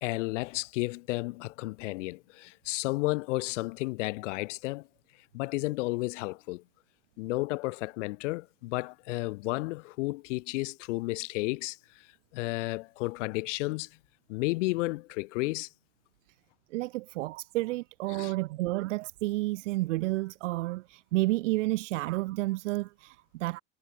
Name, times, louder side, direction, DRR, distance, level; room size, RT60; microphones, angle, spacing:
voice 1, 0.0-4.9 5.3-6.6 7.2-12.1 12.3-13.9 14.3-15.7 18.1-18.3, left 22 dB, 75° left, 0.6 m, -32 dB
voice 2, 16.7-23.6, right 19 dB, 80° right, 1.4 m, -31 dB
supercardioid pair, 145°, 36 cm